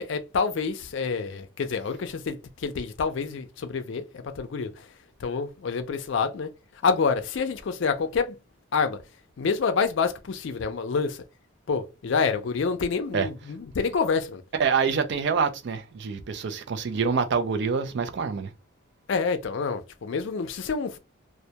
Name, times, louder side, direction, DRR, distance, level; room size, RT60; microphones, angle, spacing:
voice 1, 0.0-4.8 5.2-6.5 6.8-8.4 8.7-9.0 9.4-11.2 11.7-14.4 19.1-21.0, left 5 dB, 60° left, 0.4 m, -27 dB
voice 2, 14.6-18.5, right 5 dB, 55° right, 0.4 m, -26 dB
2.1 x 2.1 x 2.7 m
head